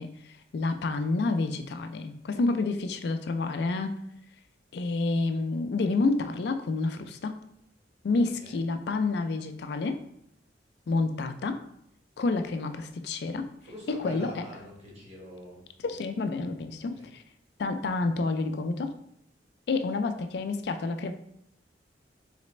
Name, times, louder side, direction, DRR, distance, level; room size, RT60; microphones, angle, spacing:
voice 1, 0.0-3.9 4.7-7.4 8.0-10.0 10.9-11.6 12.2-13.5 13.9-14.3 15.8-17.2 17.6-18.9 19.7-21.1, left 3 dB, 60° left, 8 dB, 0.3 m, -29 dB
voice 2, 13.6-15.6 16.8-17.1, equal, 35° right, -3 dB, 1.1 m, -44 dB
4.1 x 3.2 x 3.1 m, 0.74 s
head